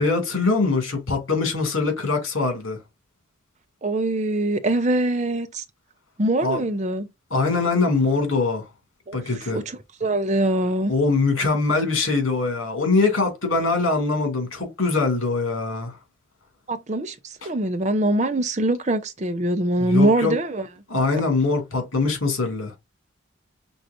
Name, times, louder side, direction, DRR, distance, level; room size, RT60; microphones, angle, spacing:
voice 1, 0.0-2.8 6.4-6.7 7.3-8.7 9.1-9.6 10.9-16.0 17.4-17.5 19.8-20.3 20.9-22.8, left 3 dB, 80° left, 2.5 m, -23 dB
voice 2, 3.8-5.6 6.2-7.1 9.1-9.2 9.5-9.6 10.0-10.9 16.7-20.6, right 1 dB, 35° right, 0.7 m, -23 dB
6.2 x 3.1 x 2.6 m
head